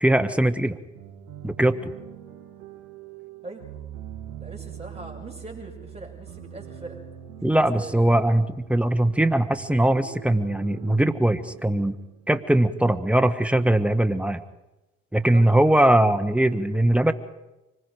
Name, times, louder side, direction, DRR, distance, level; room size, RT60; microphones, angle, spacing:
voice 1, 0.0-0.8 1.4-1.9 7.4-11.9 12.3-14.4 15.1-17.1, right 1 dB, 5° right, 11 dB, 1.4 m, -21 dB
sound 1, 0.9-12.7, right 10 dB, 85° right, 3.0 m, -43 dB
voice 2, 4.4-7.0 7.4-8.2 15.3-15.5, right 2 dB, 20° right, 1 dB, 7.0 m, -41 dB
25.0 x 20.5 x 5.1 m, 1.0 s
hypercardioid pair, 45°, 32 cm